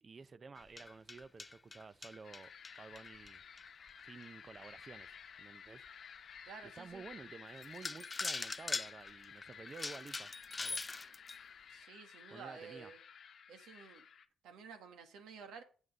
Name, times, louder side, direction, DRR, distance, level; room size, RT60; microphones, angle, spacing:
voice 1, 0.0-2.5 2.8-3.4 4.0-5.1 5.4-5.8 6.6-10.3 10.6-10.8 12.3-12.9, right 4 dB, 35° right, 0.5 m, -52 dB
sound 1, 0.6-4.0 4.6-4.7 5.2-5.3 5.9-6.0 7.1-7.2 7.6-11.4, left 3 dB, 25° left, 0.5 m, -42 dB
sound 2, 2.2-14.3, left 7 dB, 55° left, 0.9 m, -54 dB
voice 2, 6.4-7.0 11.7-13.0 13.5-14.1 14.4-15.6, right 5 dB, 85° right, 1.5 m, -52 dB
8.0 x 5.7 x 5.3 m
cardioid pair, 90°, 0 cm